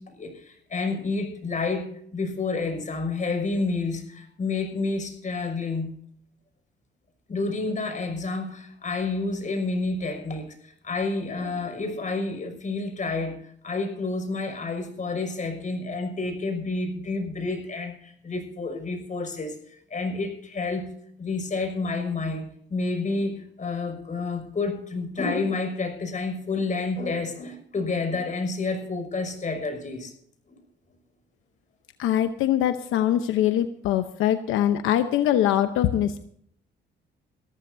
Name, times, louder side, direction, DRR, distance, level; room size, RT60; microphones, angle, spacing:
voice 1, 0.0-5.9 7.3-20.9 21.2-30.1, left 3 dB, 40° left, 5 dB, 5.9 m, -29 dB
voice 2, 32.0-36.2, left 11 dB, 90° left, 8 dB, 0.9 m, -23 dB
23.0 x 14.0 x 2.7 m, 0.64 s
cardioid pair, 90°, 20 cm